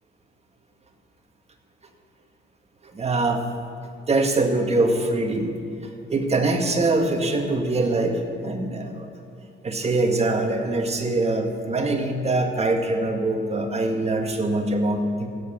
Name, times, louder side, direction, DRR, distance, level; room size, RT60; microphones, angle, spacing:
voice 1, 2.9-3.4 4.1-5.5 5.8-9.1 9.6-15.3, right 2 dB, 30° right, 4 dB, 1.8 m, -23 dB
16.5 x 7.4 x 7.3 m, 2.5 s
cardioid pair, 90°, 20 cm